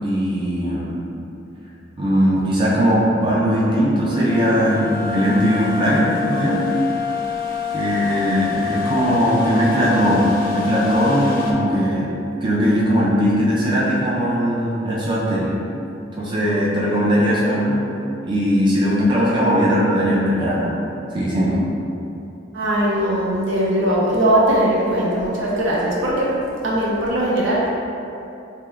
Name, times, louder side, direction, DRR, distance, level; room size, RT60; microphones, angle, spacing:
voice 1, 0.0-1.0 2.0-6.6 7.7-12.1 12.4-15.5 16.2-17.8 18.2-20.7 21.1-21.6, equal, 25° right, -7 dB, 0.4 m, -19 dB
sound 1, 4.1-11.5, left 8 dB, 50° left, 0.4 m, -27 dB
voice 2, 22.5-26.3 26.6-27.7, right 1 dB, 70° right, -5 dB, 0.6 m, -19 dB
3.4 x 2.9 x 2.3 m, 2.7 s
head